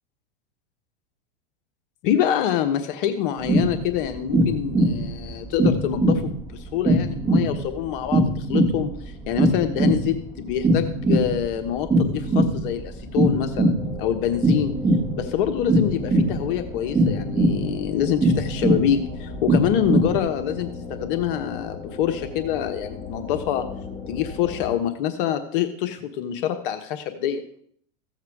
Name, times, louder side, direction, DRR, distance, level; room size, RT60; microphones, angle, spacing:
voice 1, 2.0-13.7 14.0-14.7 15.2-23.7 24.1-27.4, left 10 dB, 60° left, 7 dB, 1.3 m, -26 dB
sound 1, 3.4-20.2, right 1 dB, 10° right, 1.6 m, -22 dB
sound 2, 13.8-24.8, left 4 dB, 15° left, 2.3 m, -37 dB
15.0 x 7.3 x 4.8 m, 0.63 s
hypercardioid pair, 115°, 30 cm